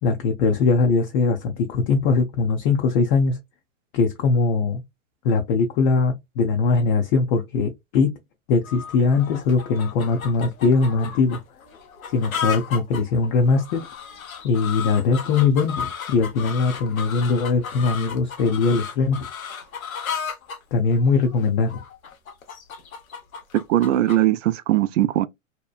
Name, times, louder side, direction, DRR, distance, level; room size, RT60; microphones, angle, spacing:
voice 1, 0.0-3.4 3.9-4.8 5.2-8.2 8.5-11.4 12.1-13.9 14.4-19.3 20.7-21.8, left 4 dB, 40° left, 0.5 m, -21 dB
sound 1, 8.6-24.2, left 7 dB, 90° left, 0.8 m, -34 dB
voice 2, 23.5-25.3, right 13 dB, 65° right, 0.5 m, -20 dB
2.8 x 2.1 x 2.3 m
hypercardioid pair, 115°, 40 cm